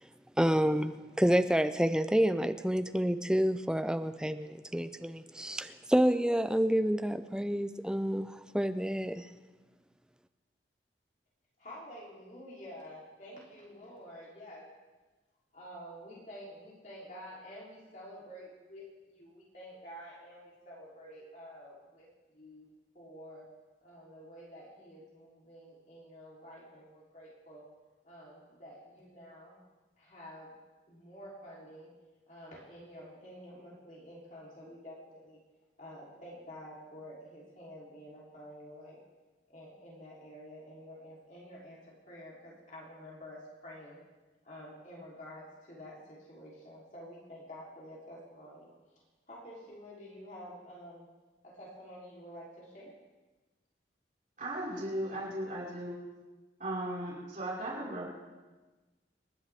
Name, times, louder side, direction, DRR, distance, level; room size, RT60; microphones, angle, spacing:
voice 1, 0.4-9.3, equal, 5° right, 9 dB, 0.5 m, -29 dB
voice 2, 11.6-14.7 15.5-22.7 22.9-23.5 23.8-27.7 28.0-29.6 30.0-30.6 30.9-31.9 32.3-35.4 35.8-39.0 39.5-44.0 44.4-48.7 49.3-51.1 51.4-52.9, equal, 45° left, -5 dB, 3.4 m, -49 dB
voice 3, 54.4-56.0 56.6-58.1, right 1 dB, 45° right, -7 dB, 5.2 m, -36 dB
28.0 x 10.5 x 3.6 m, 1.2 s
head